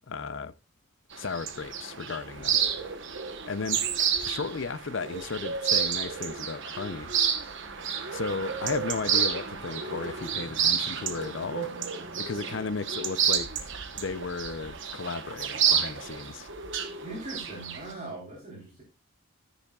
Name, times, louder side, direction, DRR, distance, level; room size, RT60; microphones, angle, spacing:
voice 1, 0.1-0.5 1.2-2.6 3.4-3.8 4.2-7.1 8.1-11.7 12.2-16.5, left 4 dB, 55° left, 0.6 m, -35 dB
sound 1, 1.1-17.9, right 7 dB, 55° right, 1.1 m, -30 dB
voice 2, 17.0-18.8, right 2 dB, 35° right, 3.8 m, -40 dB
13.5 x 10.0 x 2.4 m
head